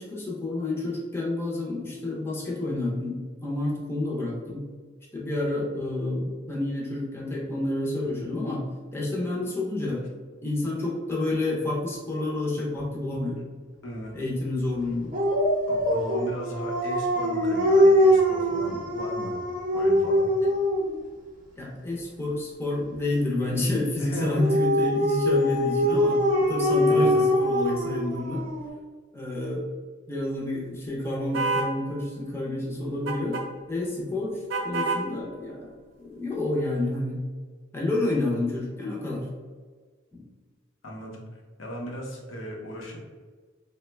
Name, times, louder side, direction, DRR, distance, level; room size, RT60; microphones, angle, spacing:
voice 1, 0.0-4.6 5.1-8.6 8.9-10.0 10.4-13.4 14.1-15.1 20.4-20.5 21.6-26.2 26.5-28.4 29.1-29.6 30.1-33.4 33.7-37.2 37.7-39.3 40.1-40.2, left 2 dB, 15° left, -4 dB, 0.6 m, -29 dB
voice 2, 13.8-14.2 15.7-19.3 19.7-20.3 24.0-24.6 26.9-27.3 40.8-41.2 41.6-43.0, equal, 90° left, -1 dB, 0.7 m, -37 dB
Dog, 15.1-20.9 24.1-28.7, equal, 45° right, 0.6 m, -23 dB
sound 1, 31.3-31.7 33.1-33.4 34.5-35.0, right 3 dB, 90° right, 0.6 m, -27 dB
2.9 x 2.1 x 3.2 m, 1.5 s
head